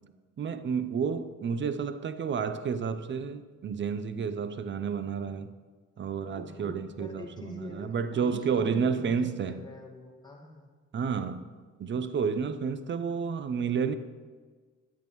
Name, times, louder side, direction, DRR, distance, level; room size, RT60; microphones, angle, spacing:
voice 1, 0.4-5.5 6.0-9.5 10.9-11.5 11.8-13.9, right 6 dB, 40° right, 0.6 m, -30 dB
voice 2, 6.3-10.7 13.3-13.4, left 2 dB, 15° left, 1.8 m, -45 dB
9.1 x 8.2 x 3.1 m
cardioid pair, 90°, 30 cm